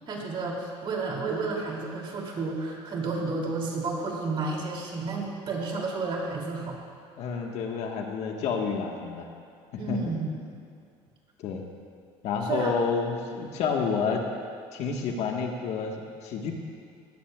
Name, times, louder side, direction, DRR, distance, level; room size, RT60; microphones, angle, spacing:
voice 1, 0.1-6.8 9.8-10.3 12.4-12.7, right 3 dB, 45° right, -1 dB, 2.7 m, -31 dB
voice 2, 7.2-9.3 9.7-10.2 11.4-11.7 12.2-14.2 14.7-16.5, left 5 dB, 65° left, 1 dB, 1.4 m, -29 dB
18.0 x 13.0 x 2.3 m, 2.3 s
cardioid pair, 120°, 12 cm